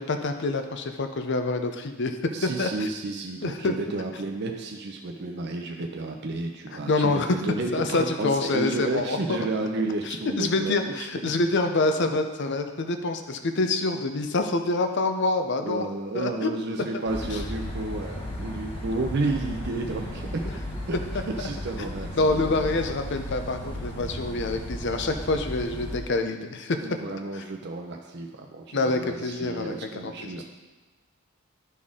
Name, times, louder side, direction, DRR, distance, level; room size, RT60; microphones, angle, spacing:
voice 1, 0.0-2.2 2.4-2.9 3.4-3.8 6.9-7.4 7.7-9.4 10.0-15.9 16.1-16.5 17.2-17.4 20.4-20.5 21.4-21.5 21.8-26.9 27.3-27.4 28.7-30.4, left 2 dB, 55° left, 7 dB, 0.6 m, -26 dB
voice 2, 2.3-10.9 11.2-11.3 15.6-20.4 20.9-21.0 21.4-22.7 26.8-30.4, right 2 dB, 50° right, 2 dB, 0.6 m, -32 dB
sound 1, 17.1-26.0, equal, 25° left, 1.3 m, -35 dB
12.0 x 4.2 x 3.7 m, 1.3 s
head